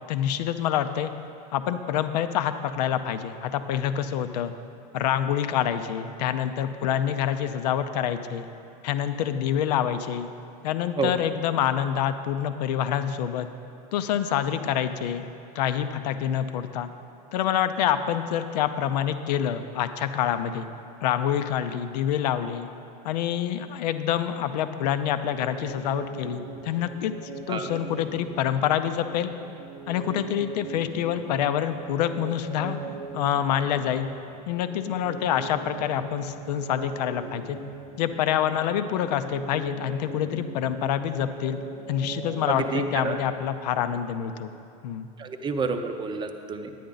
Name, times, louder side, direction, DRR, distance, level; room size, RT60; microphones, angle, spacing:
voice 1, 0.1-1.1 1.5-4.5 4.9-8.5 8.8-10.3 10.6-13.5 13.9-15.3 15.5-16.9 17.3-20.7 21.0-22.7 23.0-27.1 27.5-29.3 29.9-32.8 33.1-34.1 34.5-37.6 38.0-41.6 41.9-44.5 44.8-45.1, left 10 dB, 80° left, 10 dB, 0.6 m, -26 dB
sound 1, 25.2-44.0, right 4 dB, 75° right, 0.8 m, -40 dB
voice 2, 42.5-43.2 45.2-46.7, right 4 dB, 20° right, 7 dB, 0.6 m, -29 dB
10.0 x 9.3 x 3.9 m, 2.6 s
supercardioid pair, 120°, 21 cm